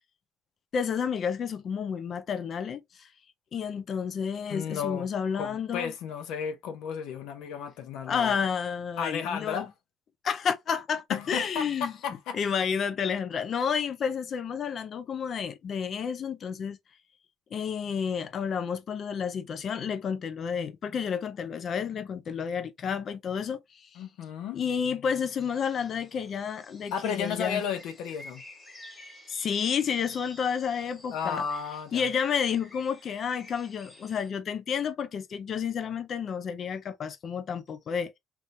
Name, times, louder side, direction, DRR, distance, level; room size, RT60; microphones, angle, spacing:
voice 1, 0.7-3.1 3.5-5.9 8.1-9.7 10.2-11.9 12.3-16.8 17.5-23.9 24.5-27.6 29.3-31.4 31.9-38.1, left 7 dB, 35° left, 0.5 m, -30 dB
voice 2, 4.5-5.1 5.3-8.4 9.0-9.7 11.1-12.4 24.0-24.6 26.9-28.4 31.1-32.1, left 7 dB, 75° left, 0.8 m, -33 dB
sound 1, 25.1-34.3, left 1 dB, 15° left, 1.5 m, -51 dB
3.2 x 3.0 x 2.6 m
cardioid pair, 170°, 0 cm